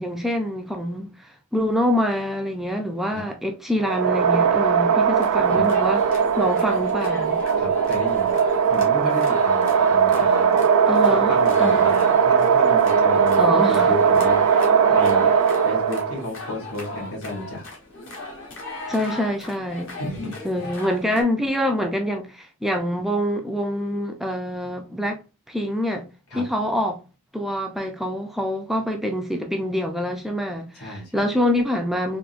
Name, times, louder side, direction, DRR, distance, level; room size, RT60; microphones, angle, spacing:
voice 1, 0.0-7.4 10.9-11.3 11.6-11.9 13.4-13.9 18.9-20.0 20.4-25.2 25.5-26.1 26.3-27.0 27.3-32.2, equal, ahead, 0.3 m, -25 dB
sound 1, 3.8-16.3, right 6 dB, 85° right, 0.4 m, -19 dB
sound 2, 5.2-21.2, left 2 dB, 60° left, 1.1 m, -37 dB
voice 2, 7.5-8.4 8.7-10.6 11.1-15.3 15.6-17.6 20.0-20.7 26.3-26.4 30.7-31.3, left 1 dB, 90° left, 1.6 m, -33 dB
3.7 x 2.6 x 2.4 m
head